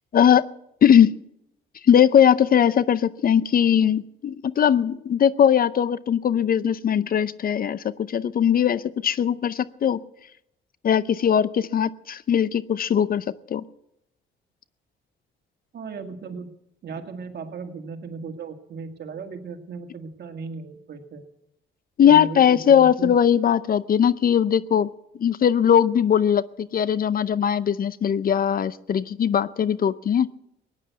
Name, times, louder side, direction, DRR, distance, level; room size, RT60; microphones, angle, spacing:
voice 1, 0.8-1.2 1.8-10.0 10.8-13.6 22.0-24.9 25.2-30.3, left 8 dB, 45° left, 17 dB, 0.6 m, -20 dB
voice 2, 15.7-16.5 16.8-21.2 22.0-23.1, right 5 dB, 55° right, 5 dB, 2.1 m, -36 dB
17.0 x 9.9 x 8.2 m, 0.82 s
cardioid pair, 90°, 20 cm